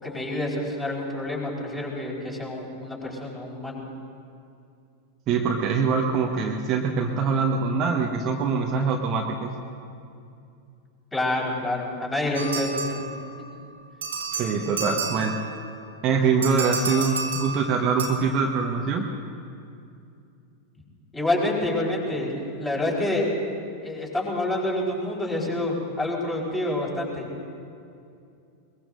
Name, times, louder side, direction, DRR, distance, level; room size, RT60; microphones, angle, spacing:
voice 1, 0.0-3.8 11.1-13.0 21.1-23.3 23.8-27.3, left 1 dB, 10° left, -3 dB, 4.5 m, -27 dB
voice 2, 5.3-9.5 14.3-15.3 16.0-19.1, right 5 dB, 35° right, 1 dB, 1.3 m, -24 dB
sound 1, 12.3-13.5 14.0-15.7 16.4-18.1, right 4 dB, 65° right, 2.0 m, -31 dB
22.5 x 22.0 x 2.6 m, 2.5 s
figure-of-eight pair, 90°, 0 cm